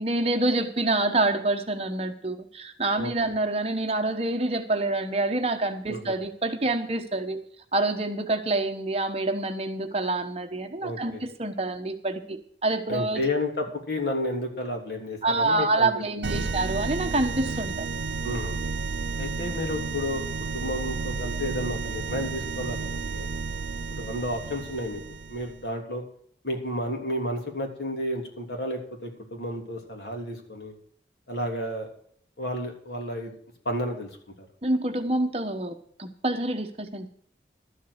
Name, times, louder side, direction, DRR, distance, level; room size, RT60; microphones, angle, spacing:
voice 1, 0.0-7.4 7.7-13.3 15.2-17.9 34.6-37.1, right 2 dB, 35° right, 7 dB, 1.1 m, -27 dB
voice 2, 10.8-11.2 12.9-15.9 18.2-18.7 19.2-20.3 20.5-23.3 23.9-25.0 25.3-26.0 26.4-30.7 31.3-31.9 32.4-33.4 33.6-34.1 34.4-34.5, left 1 dB, 75° left, 2 dB, 3.2 m, -31 dB
sound 1, 16.2-25.6, right 4 dB, 85° right, 0.6 m, -32 dB
12.5 x 7.6 x 6.5 m, 0.62 s
head